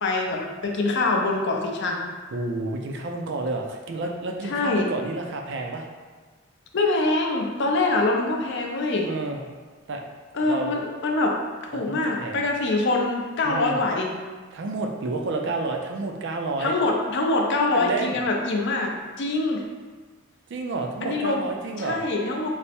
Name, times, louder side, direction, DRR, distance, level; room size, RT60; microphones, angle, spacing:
voice 1, 0.0-2.1 4.4-4.9 6.7-9.1 10.3-11.4 11.7-14.1 16.6-19.6 21.0-21.4 21.8-22.5, left 2 dB, 55° left, 1 dB, 0.5 m, -24 dB
voice 2, 2.3-5.8 9.0-9.4 9.9-10.0 10.4-10.7 11.8-12.4 13.4-13.8 14.5-16.7 17.6-18.2 20.5-22.0, right 3 dB, 55° right, 2 dB, 0.4 m, -30 dB
3.3 x 2.0 x 4.2 m, 1.4 s
head